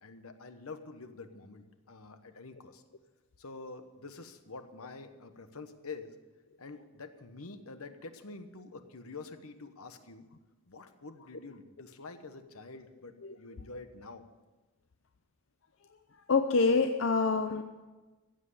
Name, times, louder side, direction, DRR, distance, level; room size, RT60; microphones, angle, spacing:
voice 1, 0.0-2.8 3.4-6.2 6.6-10.3 10.7-14.2, left 3 dB, 75° left, 9 dB, 1.1 m, -47 dB
voice 2, 16.3-17.6, left 4 dB, 55° left, 7 dB, 0.6 m, -26 dB
15.5 x 7.8 x 8.5 m, 1.2 s
head